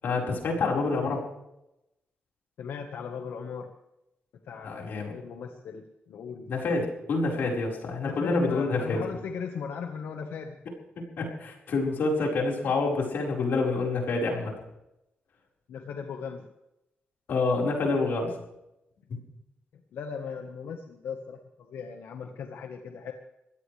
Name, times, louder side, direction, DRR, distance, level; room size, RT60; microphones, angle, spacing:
voice 1, 0.0-1.3 4.6-5.1 6.5-9.0 11.2-14.6 17.3-18.4 19.1-19.2, left 3 dB, 60° left, -1 dB, 4.9 m, -27 dB
voice 2, 2.6-3.7 4.4-6.5 8.0-10.6 15.7-16.5 19.7-23.1, left 6 dB, 85° left, 4 dB, 1.5 m, -38 dB
23.0 x 17.0 x 3.4 m, 0.88 s
wide cardioid pair, 180°, 4 cm